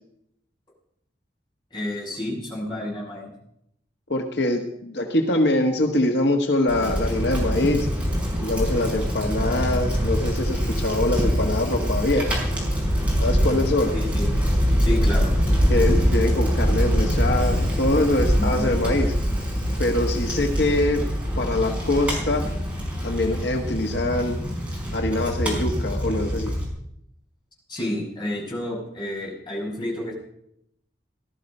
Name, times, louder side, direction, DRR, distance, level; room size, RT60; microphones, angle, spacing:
voice 1, 1.7-3.3 13.9-14.3 14.8-15.4 18.4-18.7 27.7-30.1, left 1 dB, 25° left, -3 dB, 6.7 m, -30 dB
voice 2, 4.1-7.9 8.4-12.4 13.2-13.9 15.7-19.1 19.8-21.0 21.4-22.5 23.0-24.4 24.9-26.6, left 1 dB, 75° left, 3 dB, 1.5 m, -24 dB
Bicycle, 6.7-26.6, equal, 5° right, 5.4 m, -24 dB
19.0 x 12.5 x 5.5 m, 0.75 s
head